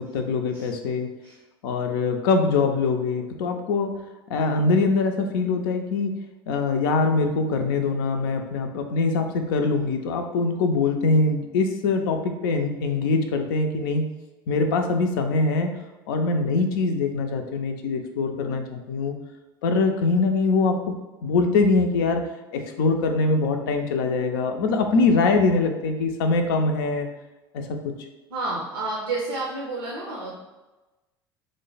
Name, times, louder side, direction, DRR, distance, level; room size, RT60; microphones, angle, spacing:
voice 1, 0.0-1.1 1.6-3.9 4.3-6.1 6.5-14.1 14.5-15.7 16.1-19.1 19.6-20.8 21.2-22.2 22.5-27.1 27.5-27.8, left 3 dB, 65° left, 5 dB, 0.4 m, -23 dB
voice 2, 28.3-30.4, right 2 dB, 80° right, -4 dB, 0.6 m, -30 dB
3.1 x 2.1 x 3.9 m, 1.1 s
figure-of-eight pair, 70°, 12 cm